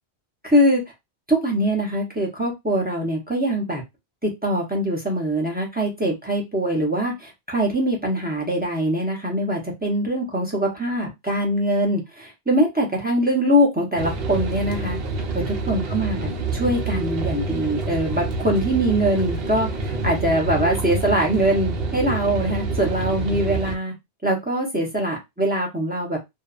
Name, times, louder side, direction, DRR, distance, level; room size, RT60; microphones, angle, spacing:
voice 1, 0.4-0.8 1.3-3.8 4.2-15.0 15.7-23.9 24.2-26.2, right 1 dB, 10° right, -1 dB, 0.5 m, -23 dB
sound 1, 14.0-23.7, right 3 dB, 65° right, 0.8 m, -27 dB
2.6 x 2.1 x 2.4 m, 0.20 s
omnidirectional pair, 1.1 m